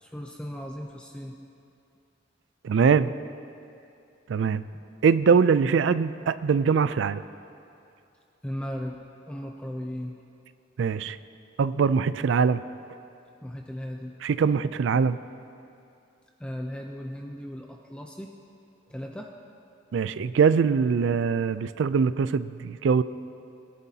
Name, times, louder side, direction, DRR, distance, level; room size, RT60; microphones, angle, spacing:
voice 1, 0.0-1.4 8.4-9.0 9.3-10.1 13.4-14.1 16.4-18.3 18.9-19.3, equal, 5° left, 1 dB, 0.5 m, -36 dB
voice 2, 2.6-3.1 4.3-4.7 5.0-7.2 10.8-11.2 11.6-12.6 14.2-15.2 19.9-23.0, right 6 dB, 75° right, 15 dB, 0.3 m, -22 dB
21.5 x 11.0 x 2.8 m, 2.6 s
head